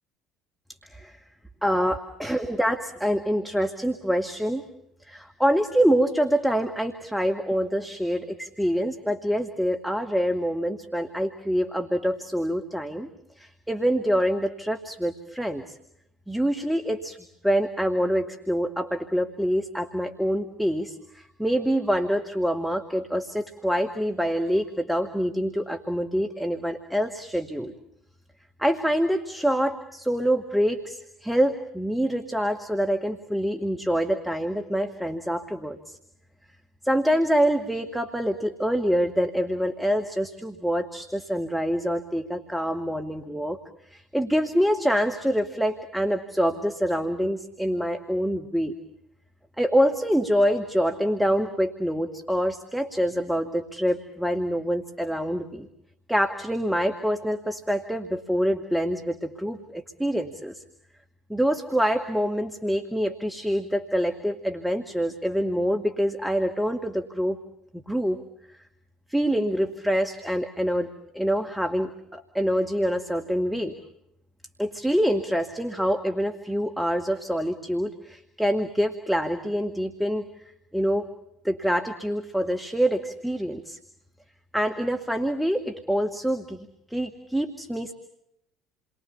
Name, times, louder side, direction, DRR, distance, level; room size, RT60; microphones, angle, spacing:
voice 1, 0.9-1.2 1.6-4.6 5.0-13.1 13.4-15.8 16.3-17.2 17.4-27.7 28.6-36.0 36.8-43.6 43.9-48.8 49.6-55.7 56.1-60.6 61.3-67.4 67.7-68.2 68.5-68.6 69.1-73.8 74.6-80.2 80.7-81.1 81.4-83.8 84.5-87.9, equal, 5° right, 4 dB, 1.9 m, -26 dB
29.5 x 22.5 x 7.0 m, 0.79 s
figure-of-eight pair, 60°, 0 cm